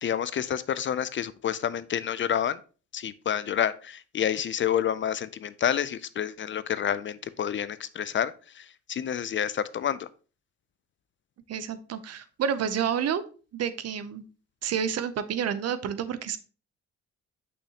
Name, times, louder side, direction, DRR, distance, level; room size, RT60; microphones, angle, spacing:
voice 1, 0.0-2.6 2.9-10.1, left 9 dB, 40° left, 16 dB, 0.4 m, -29 dB
voice 2, 11.5-13.2 13.5-14.2 14.6-16.4, right 8 dB, 55° right, 13 dB, 0.7 m, -29 dB
6.3 x 5.8 x 2.9 m, 0.37 s
cardioid pair, 90°, 30 cm